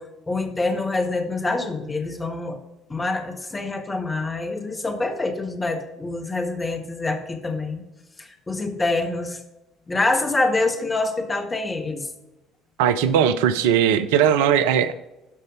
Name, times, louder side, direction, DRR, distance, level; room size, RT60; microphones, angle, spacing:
voice 1, 0.0-2.6 2.9-7.8 8.2-9.4 9.9-12.1, left 2 dB, 20° left, 4 dB, 1.6 m, -26 dB
voice 2, 12.8-14.9, right 8 dB, 65° right, 12 dB, 0.4 m, -19 dB
12.5 x 5.3 x 5.0 m, 0.98 s
figure-of-eight pair, 55°, 0 cm